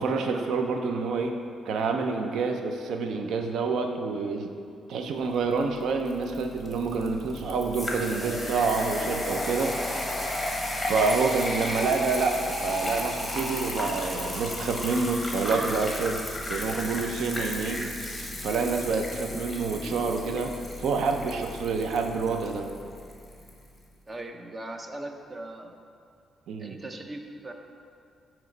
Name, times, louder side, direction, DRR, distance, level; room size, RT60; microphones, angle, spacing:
voice 1, 0.0-1.4 1.7-4.5 4.9-9.8 10.8-16.2 16.5-17.9 18.4-20.5 20.8-22.7 26.5-26.8, right 4 dB, 75° right, 5 dB, 0.5 m, -27 dB
sound 1, 5.6-23.6, left 1 dB, 15° left, 1.0 m, -34 dB
voice 2, 24.1-25.8 26.6-27.5, right 1 dB, 25° right, 4 dB, 0.5 m, -40 dB
9.0 x 3.1 x 3.9 m, 2.4 s
cardioid pair, 100°, 0 cm